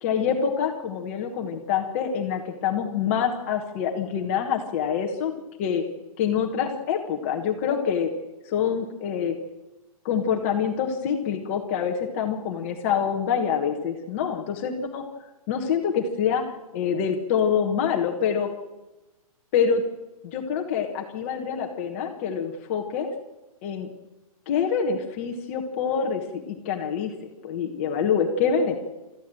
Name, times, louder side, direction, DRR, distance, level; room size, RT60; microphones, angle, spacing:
voice 1, 0.0-5.3 5.6-5.8 6.2-8.1 8.4-9.3 10.0-15.0 15.5-16.4 16.7-18.5 19.5-19.8 20.2-23.1 23.6-23.9 24.5-26.2 26.5-27.1 27.4-28.9, left 7 dB, 20° left, 2 dB, 1.2 m, -26 dB
29.0 x 14.0 x 7.6 m, 1.1 s
hypercardioid pair, 180°, 19 cm